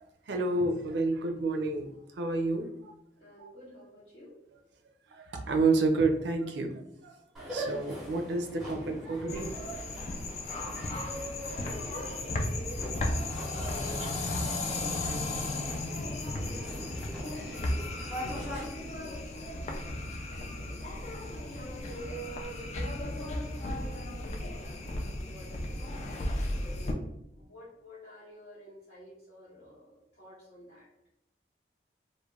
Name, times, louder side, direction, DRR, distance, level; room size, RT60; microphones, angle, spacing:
voice 1, 0.3-2.9 3.4-3.5 5.1-9.5, right 3 dB, 80° right, 5 dB, 0.4 m, -30 dB
voice 2, 3.2-4.4 10.9-19.9 20.3-21.1 21.7-27.0 27.3-30.9, equal, 60° left, -9 dB, 0.7 m, -48 dB
sound 1, 7.4-18.6, equal, ahead, 0.7 m, -41 dB
sound 2, 9.3-26.9, left 2 dB, 40° left, 0.3 m, -35 dB
2.3 x 2.1 x 3.2 m, 0.78 s
head